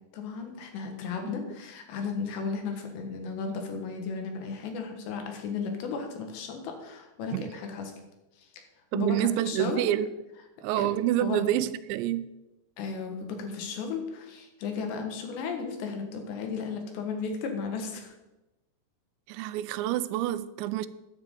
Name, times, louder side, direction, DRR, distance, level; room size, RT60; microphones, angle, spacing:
voice 1, 0.1-7.9 8.4-8.5 8.9-9.9 10.8-10.9 11.2-11.4 12.8-18.1, left 5 dB, 75° left, 3.6 m, -34 dB
voice 2, 8.9-10.1 10.6-12.3 19.3-20.9, right 13 dB, 85° right, 2.8 m, -27 dB
13.5 x 9.4 x 3.7 m
omnidirectional pair, 5.2 m